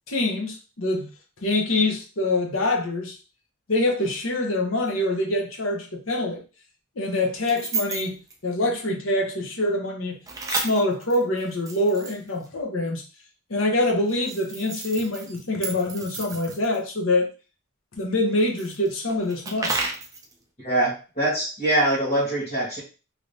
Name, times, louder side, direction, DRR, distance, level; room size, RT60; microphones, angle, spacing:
voice 1, 0.1-1.1 1.4-3.2 3.7-6.4 7.0-10.2 10.5-13.0 13.5-17.3 18.0-19.8, left 2 dB, 70° left, 0.9 m, -25 dB
sound 1, 4.9-5.0 7.4-8.3 10.3-12.5 14.1-16.8 18.4-20.3, right 3 dB, 15° right, 0.4 m, -32 dB
voice 2, 20.6-22.8, right 1 dB, 30° left, 1.4 m, -23 dB
3.2 x 2.9 x 2.6 m
head